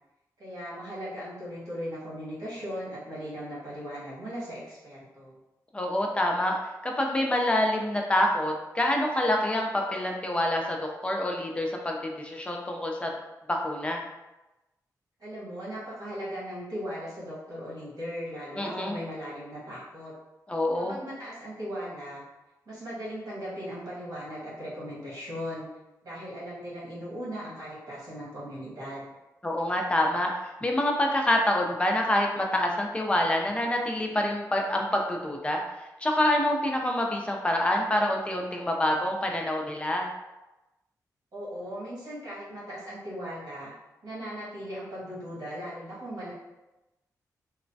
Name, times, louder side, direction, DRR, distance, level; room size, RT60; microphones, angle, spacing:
voice 1, 0.4-5.4 15.2-20.1 20.7-22.2 22.7-25.7 26.0-29.1 41.3-43.7 44.0-46.3, equal, 65° right, -8 dB, 1.4 m, -38 dB
voice 2, 5.7-6.6 6.8-13.1 13.5-14.0 18.6-19.0 20.5-21.0 29.4-30.3 30.6-35.6 36.0-40.1, left 1 dB, 15° left, 1 dB, 0.4 m, -26 dB
3.1 x 2.1 x 2.6 m, 1.0 s
wide cardioid pair, 110°, 7 cm